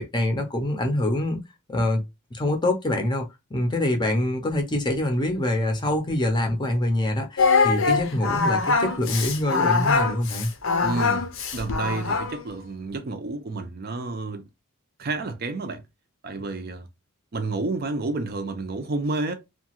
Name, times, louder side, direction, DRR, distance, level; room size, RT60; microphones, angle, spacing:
voice 1, 0.0-1.4 1.7-2.0 2.3-10.5, left 1 dB, 20° left, 0.6 m, -25 dB
Singing, 7.4-12.4, left 4 dB, 65° left, 0.6 m, -23 dB
voice 2, 10.8-11.3 11.5-14.4 15.0-15.8 16.2-16.9 17.3-19.3, right 3 dB, 45° right, 0.5 m, -30 dB
2.8 x 2.3 x 2.9 m
head